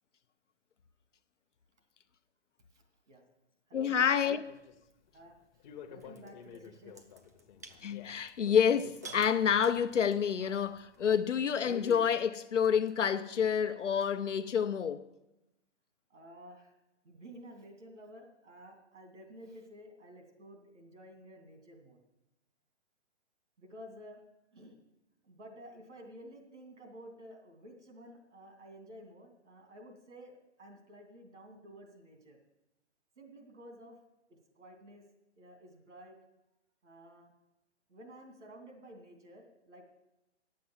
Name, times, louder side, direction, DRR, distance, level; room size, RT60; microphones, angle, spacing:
voice 1, 2.7-3.2 3.7-4.1 5.1-5.4 5.9-7.1 16.1-16.7 17.0-22.0 23.6-24.2 24.5-24.8 25.2-32.4 33.2-34.0 34.3-35.0 35.3-36.2 36.8-37.3 37.9-39.9, equal, 85° right, 2.6 m, -52 dB
voice 2, 3.7-4.4 7.8-15.1, left 7 dB, 85° left, 0.8 m, -28 dB
sound 1, 4.4-12.0, left 9 dB, 40° left, 0.9 m, -50 dB
sound 2, 6.0-14.3, right 4 dB, 15° right, 0.3 m, -57 dB
9.5 x 7.7 x 7.3 m
hypercardioid pair, 130°, 35 cm